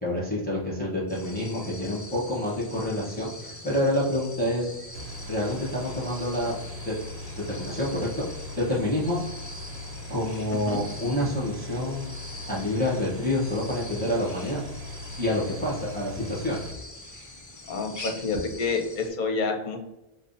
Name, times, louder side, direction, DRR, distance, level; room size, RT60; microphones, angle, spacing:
voice 1, 0.0-4.7 5.3-6.6 6.8-6.9 7.5-8.2 8.6-9.2 10.1-12.1 12.5-14.6 15.2-16.7, left 1 dB, 10° left, -6 dB, 0.9 m, -28 dB
sound 1, 1.1-19.1, left 2 dB, 25° left, 0.5 m, -44 dB
sound 2, 4.9-16.7, left 2 dB, 80° right, 0.9 m, -40 dB
voice 2, 10.5-10.8 17.7-19.8, left 4 dB, 55° left, 4 dB, 0.7 m, -28 dB
5.3 x 2.1 x 2.6 m, 0.96 s
omnidirectional pair, 1.0 m